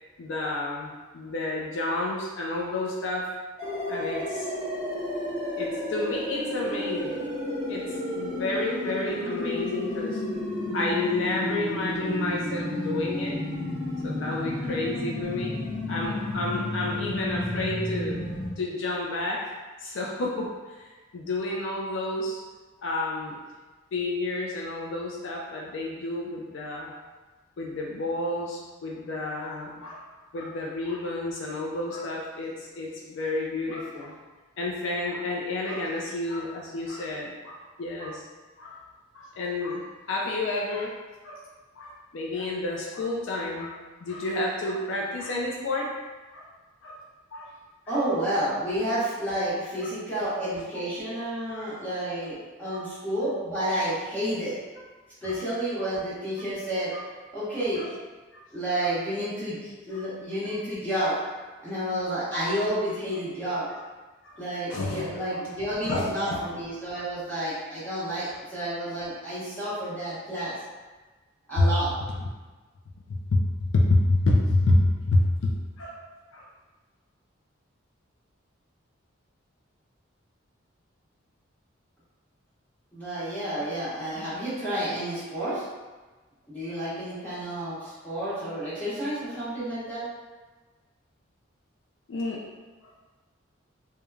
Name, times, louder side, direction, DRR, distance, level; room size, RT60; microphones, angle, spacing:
voice 1, 0.2-3.3 3.9-4.5 5.6-7.3 7.7-7.8 8.1-10.2 10.7-13.3 14.0-15.5 15.9-18.2 18.6-19.4 19.8-22.4 22.8-23.3 23.9-26.9 27.6-30.0 30.3-34.1 34.6-38.2 38.6-38.8 39.1-40.9 41.2-41.4 41.8-45.9 46.3-46.4 46.8-47.0 47.3-47.5 47.9-48.0 49.8-49.9 50.7-50.8 51.6-51.8 52.7-52.8 55.2-55.4 56.4-56.5 56.9-57.0 57.8-57.9 58.3-58.4 58.8-58.9 59.9-60.0 64.2-64.4 64.7-65.1 65.8-66.5 71.6-71.7 72.1-72.2 73.3-76.0 76.3-76.5 92.1-92.4 92.8-93.1, left 2 dB, 70° left, -2 dB, 0.4 m, -29 dB
sound 1, 3.6-18.5, left 1 dB, 20° right, 0.9 m, -31 dB
voice 2, 47.9-54.6 55.2-56.9 57.3-57.9 58.5-61.1 61.6-63.6 64.4-70.5 71.5-71.9 82.9-85.6 86.5-90.1, right 1 dB, 10° left, -13 dB, 1.0 m, -30 dB
3.0 x 2.2 x 2.3 m, 1.3 s
head